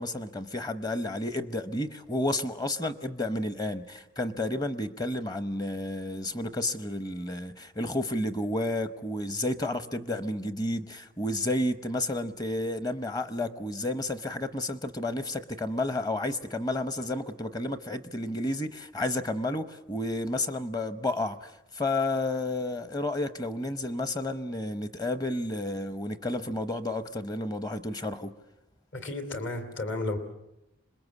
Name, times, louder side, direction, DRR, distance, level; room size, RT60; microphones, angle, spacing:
voice 1, 0.0-28.3, left 1 dB, 20° left, 0.8 m, -31 dB
voice 2, 28.9-30.2, left 2 dB, 60° left, 2.8 m, -33 dB
26.5 x 21.5 x 8.3 m
head